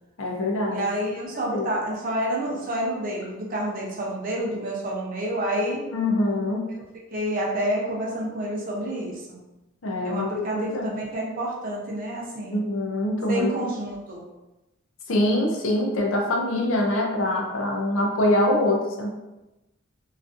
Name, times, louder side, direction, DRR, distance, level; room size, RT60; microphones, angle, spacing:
voice 1, 0.2-0.9 1.5-1.7 5.9-6.7 9.8-10.9 12.5-13.6 15.1-19.1, left 1 dB, 70° left, 0 dB, 0.5 m, -24 dB
voice 2, 0.7-5.9 7.1-9.4 10.0-12.6 13.3-14.2, right 1 dB, 40° right, -2 dB, 0.6 m, -29 dB
2.4 x 2.4 x 2.4 m, 1.0 s
head